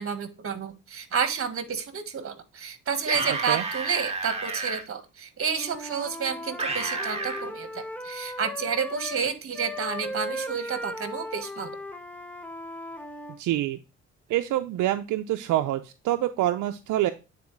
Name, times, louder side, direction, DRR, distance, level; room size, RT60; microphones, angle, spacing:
voice 1, 0.0-11.8, right 6 dB, 45° right, 10 dB, 1.5 m, -30 dB
sound 1, 3.0-4.8 6.6-7.4, right 3 dB, 20° right, 1.8 m, -31 dB
voice 2, 3.3-3.6 13.4-13.8 14.3-17.1, right 13 dB, 80° right, 7 dB, 0.6 m, -26 dB
Wind instrument woodwind instrument, 5.5-9.2 9.5-13.4, left 1 dB, 5° left, 1.0 m, -37 dB
9.4 x 4.3 x 3.2 m, 0.30 s
cardioid pair, 90°, 30 cm